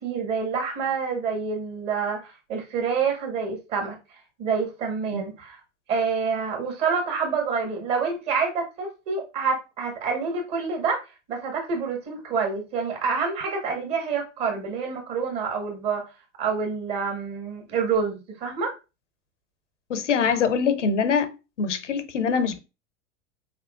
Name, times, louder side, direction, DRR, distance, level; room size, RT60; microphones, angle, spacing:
voice 1, 0.0-4.0 4.4-5.6 5.9-11.0 11.3-16.0 16.4-18.7, right 5 dB, 45° right, 1.8 m, -27 dB
voice 2, 19.9-22.6, left 6 dB, 75° left, 0.6 m, -24 dB
4.3 x 3.6 x 2.4 m
figure-of-eight pair, 80°, 36 cm